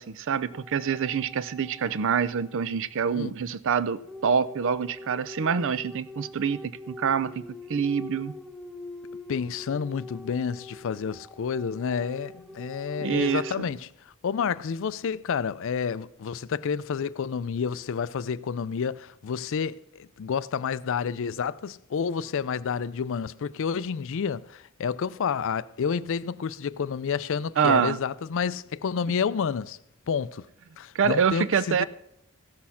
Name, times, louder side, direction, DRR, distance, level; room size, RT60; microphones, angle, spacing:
voice 1, 0.0-7.4 7.7-8.3 13.0-13.7 27.6-28.0 30.9-31.8, right 6 dB, 60° right, 0.5 m, -26 dB
sound 1, 0.5-2.9 4.1-13.5, left 2 dB, ahead, 0.4 m, -43 dB
voice 2, 9.3-13.9 14.2-29.8 30.1-30.4 30.8-31.8, left 6 dB, 60° left, 0.4 m, -29 dB
15.0 x 6.4 x 5.6 m
head